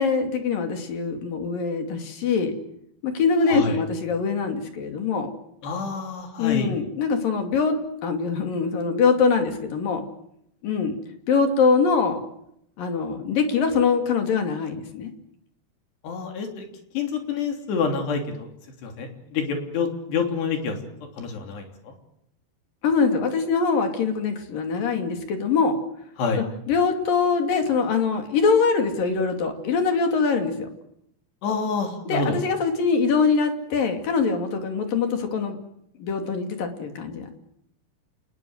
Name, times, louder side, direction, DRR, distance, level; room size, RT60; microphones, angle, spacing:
voice 1, 0.0-2.6 3.0-5.3 6.4-7.8 8.0-10.0 10.6-11.0 11.3-12.2 12.8-15.1 22.8-25.7 26.4-30.7 32.1-35.6 36.0-37.3, left 5 dB, 60° left, 5 dB, 4.3 m, -23 dB
voice 2, 3.5-3.8 5.6-6.8 16.0-16.7 16.9-18.5 18.8-20.8 21.2-21.9 26.2-26.4 31.4-32.4, left 5 dB, 85° left, 4 dB, 5.4 m, -27 dB
28.0 x 20.5 x 8.0 m, 0.75 s
omnidirectional pair, 4.7 m